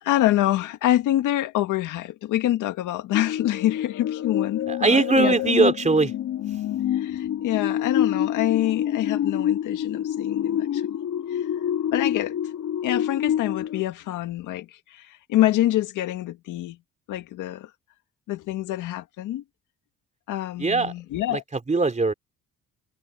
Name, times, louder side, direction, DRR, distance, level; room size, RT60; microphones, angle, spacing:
voice 1, 0.0-5.3 6.9-10.8 11.3-11.4 11.9-12.4 12.8-16.8 17.1-17.7 18.3-19.4 20.3-21.4, left 14 dB, 90° left, 1.9 m, -26 dB
sound 1, 3.1-13.8, left 10 dB, 70° left, 1.9 m, -27 dB
voice 2, 4.7-6.1 20.6-20.9 21.3-22.1, right 3 dB, 25° right, 3.1 m, -21 dB
cardioid pair, 90°, 30 cm